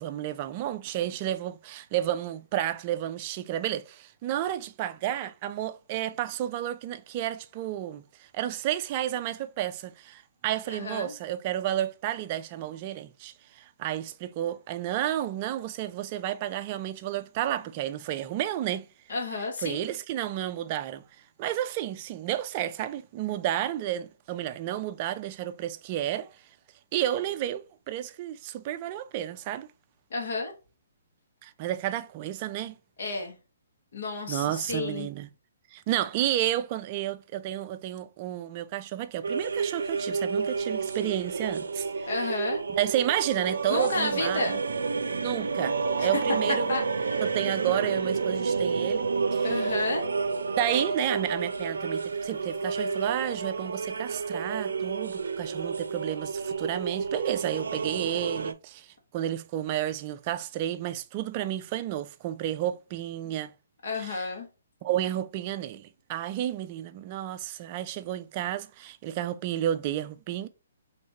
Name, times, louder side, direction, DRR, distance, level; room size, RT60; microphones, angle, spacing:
voice 1, 0.0-18.9 19.6-21.0 21.4-26.3 26.9-29.7 31.4-32.8 34.3-35.3 35.7-42.1 42.7-44.5 45.2-46.7 47.2-49.8 50.6-63.5 64.0-64.3 64.8-70.5, right 12 dB, 35° right, 0.4 m, -31 dB
voice 2, 10.7-11.1 19.1-19.8 30.1-30.5 33.0-33.4 33.9-35.1 42.1-42.6 43.7-44.6 46.0-46.2 46.7-47.3 49.4-50.1 63.8-64.5, left 3 dB, 65° left, 1.7 m, -31 dB
sound 1, 39.2-58.5, right 4 dB, 85° right, 0.5 m, -30 dB
4.3 x 3.2 x 2.9 m
hypercardioid pair, 145°, 0 cm